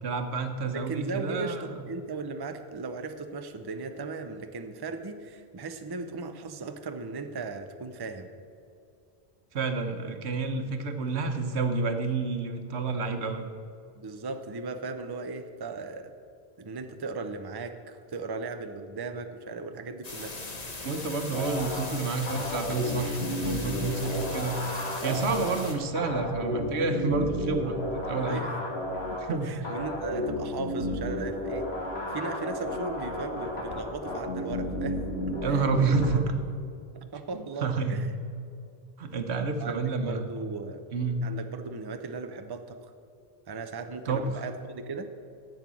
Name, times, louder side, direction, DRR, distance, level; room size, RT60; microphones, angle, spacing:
voice 1, 0.0-1.7 9.5-13.5 20.8-24.6 25.0-28.5 29.2-29.5 35.4-36.3 37.3-38.0 39.0-40.3 40.9-41.3 44.1-44.2, right 4 dB, 85° right, 6 dB, 1.2 m, -29 dB
voice 2, 0.6-8.3 14.0-16.1 16.6-20.3 25.0-25.5 28.3-28.5 29.4-31.7 32.1-35.0 35.3-35.7 36.9-38.1 39.6-40.8 41.2-42.9 43.5-45.1, right 4 dB, 30° right, 7 dB, 0.6 m, -37 dB
sound 1, 20.0-25.7, left 2 dB, 40° left, 1.3 m, -39 dB
sound 2, 21.3-36.1, left 1 dB, 70° left, 2.3 m, -33 dB
11.0 x 7.9 x 6.2 m, 2.5 s
omnidirectional pair, 1.1 m